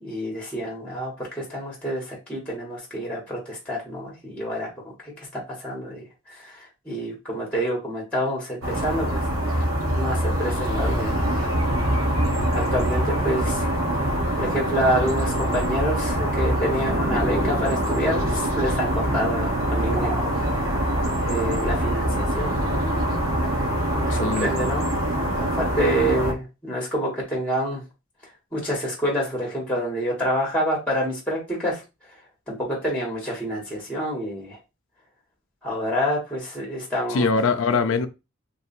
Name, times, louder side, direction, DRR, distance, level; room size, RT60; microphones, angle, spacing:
voice 1, 0.0-4.7 5.0-11.5 12.5-13.7 14.4-20.6 21.2-23.0 23.9-24.9 25.4-27.8 28.5-31.8 32.5-34.6 35.6-37.3, equal, 5° left, 1.3 m, -28 dB
sound 1, 8.6-26.3, right 1 dB, 90° right, 1.1 m, -24 dB
sound 2, 16.7-21.9, right 1 dB, 15° right, 1.0 m, -33 dB
voice 2, 24.1-24.7 37.1-38.1, left 4 dB, 70° left, 0.4 m, -23 dB
3.2 x 2.7 x 4.2 m
head